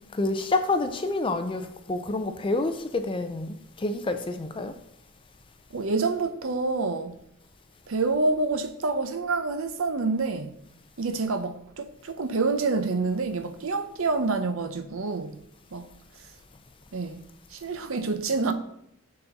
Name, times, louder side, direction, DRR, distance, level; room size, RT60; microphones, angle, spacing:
voice 1, 0.1-4.7, left 2 dB, 25° left, 0.4 m, -28 dB
voice 2, 5.7-7.1 7.9-10.5 11.0-15.4 15.7-15.8 16.9-17.2 17.5-18.5, right 3 dB, 65° right, 0.6 m, -27 dB
6.7 x 4.2 x 5.3 m
head